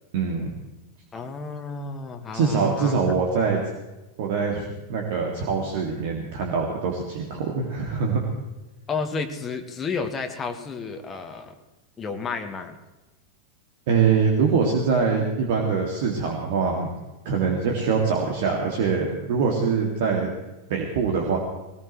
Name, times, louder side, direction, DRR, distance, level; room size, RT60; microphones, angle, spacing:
voice 1, 0.1-0.5 2.3-3.6 4.2-8.2 13.9-16.9 17.2-20.3 20.7-21.4, right 5 dB, 50° right, 1 dB, 2.3 m, -23 dB
voice 2, 1.1-3.0 8.9-11.5 12.0-12.8, left 4 dB, 20° left, 5 dB, 1.6 m, -31 dB
20.0 x 19.5 x 3.2 m, 1.1 s
figure-of-eight pair, 90°, 0 cm